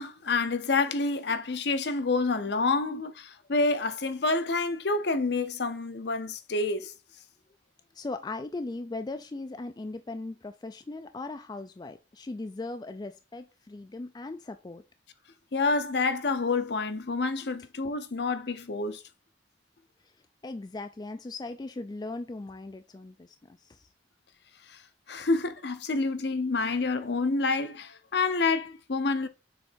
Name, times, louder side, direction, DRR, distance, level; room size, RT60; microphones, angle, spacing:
voice 1, 0.0-6.9 15.5-19.0 24.7-24.8 25.1-29.3, left 3 dB, 65° left, 0.7 m, -28 dB
voice 2, 7.9-14.8 20.4-23.9, left 2 dB, 20° left, 0.3 m, -38 dB
6.9 x 3.3 x 4.5 m
head